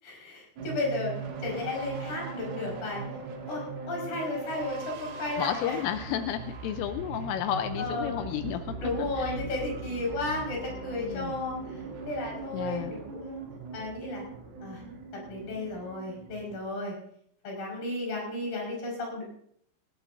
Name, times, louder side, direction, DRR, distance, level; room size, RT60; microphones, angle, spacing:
voice 1, 0.0-3.0 3.5-5.8 7.8-8.3 8.8-13.4 13.7-14.3 14.6-14.8 15.1-17.0 17.4-19.2, left 2 dB, 50° left, -2 dB, 6.9 m, -34 dB
sound 1, 0.6-16.6, right 4 dB, 70° right, 4.5 m, -40 dB
voice 2, 5.4-8.8 9.2-9.3 11.0-11.3 12.5-12.9, left 10 dB, 80° left, 8 dB, 3.2 m, -32 dB
18.5 x 18.5 x 2.6 m, 0.68 s
omnidirectional pair, 5.9 m